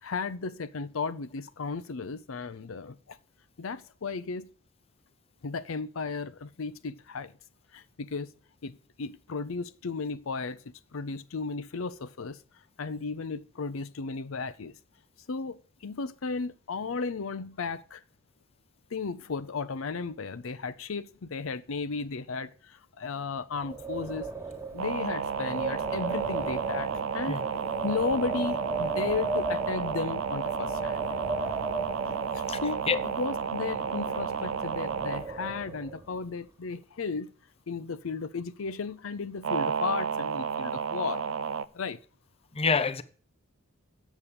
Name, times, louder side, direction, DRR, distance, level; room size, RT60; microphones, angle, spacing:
voice 1, 0.0-3.2 3.6-4.5 5.4-7.3 7.7-8.3 8.6-12.4 12.8-14.7 15.3-18.0 18.9-24.3 24.7-27.4 27.8-31.0 32.0-37.3 37.7-41.3 41.7-42.0, left 4 dB, 80° left, 0.6 m, -35 dB
Wind, 23.5-36.2, right 4 dB, 15° right, 1.5 m, -36 dB
sound 1, 24.8-35.3 39.4-41.6, right 6 dB, 75° right, 0.5 m, -32 dB
voice 2, 42.5-43.0, left 5 dB, 30° left, 0.7 m, -26 dB
8.2 x 7.3 x 6.9 m
head